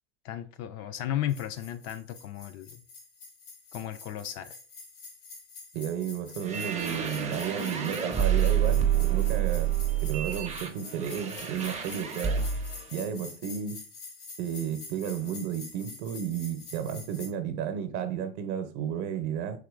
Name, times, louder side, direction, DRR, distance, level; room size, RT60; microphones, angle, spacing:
voice 1, 0.2-2.8 3.7-4.6, left 11 dB, 50° left, 0.4 m, -34 dB
sound 1, 1.3-17.3, left 4 dB, 80° left, 1.2 m, -46 dB
voice 2, 5.7-9.7 10.0-12.4 12.9-13.8 14.4-19.6, right 8 dB, 55° right, 0.7 m, -33 dB
sound 2, 6.4-12.8, right 9 dB, 20° right, 0.5 m, -28 dB
3.5 x 2.9 x 2.4 m
hypercardioid pair, 90°, 34 cm